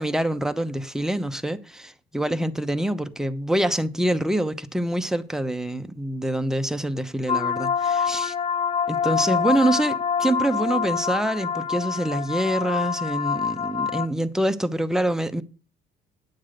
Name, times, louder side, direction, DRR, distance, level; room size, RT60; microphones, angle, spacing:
voice 1, 0.0-8.3 8.9-15.4, right 1 dB, 5° right, 0.9 m, -25 dB
sound 1, 7.3-14.1, left 7 dB, 35° left, 0.5 m, -26 dB
9.5 x 7.8 x 5.1 m
cardioid pair, 110°, 17 cm